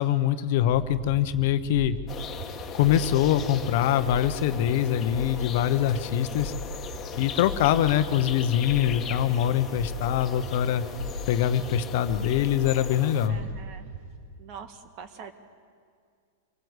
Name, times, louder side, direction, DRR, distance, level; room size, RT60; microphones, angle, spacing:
voice 1, 0.0-2.0 2.7-6.5 7.2-10.8 11.3-13.4, left 11 dB, 60° left, 11 dB, 1.0 m, -24 dB
sound 1, 0.6-14.2, left 1 dB, 75° right, 5.8 m, -38 dB
sound 2, 2.1-13.3, left 7 dB, 25° left, 1.7 m, -39 dB
voice 2, 13.3-13.9 14.4-15.3, right 7 dB, 45° right, 8 dB, 1.9 m, -43 dB
26.5 x 19.0 x 8.2 m, 2.2 s
supercardioid pair, 140°, 0 cm